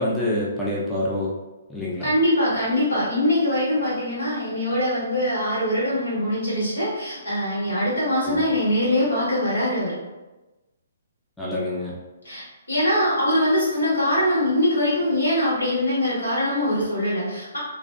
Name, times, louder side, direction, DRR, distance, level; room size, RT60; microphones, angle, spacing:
voice 1, 0.0-1.3 1.7-2.1 8.2-8.5 11.4-11.9, left 1 dB, 5° left, -7 dB, 0.4 m, -26 dB
voice 2, 2.0-9.9 12.2-17.6, left 1 dB, 80° left, -7 dB, 1.4 m, -23 dB
2.5 x 2.0 x 2.5 m, 1.1 s
figure-of-eight pair, 130°, 0 cm